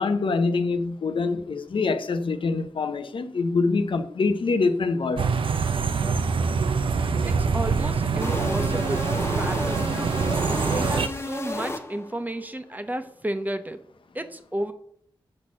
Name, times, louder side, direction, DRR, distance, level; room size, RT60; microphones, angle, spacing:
voice 1, 0.0-5.2, left 4 dB, 75° left, 0.7 m, -25 dB
sound 1, 5.2-11.1, right 5 dB, 80° right, 0.6 m, -24 dB
voice 2, 7.2-10.2 10.7-13.8 14.1-14.7, right 1 dB, 20° right, 0.9 m, -32 dB
sound 2, 8.2-12.3, left 2 dB, 30° left, 0.8 m, -32 dB
8.8 x 4.3 x 6.1 m
wide cardioid pair, 65°, 9 cm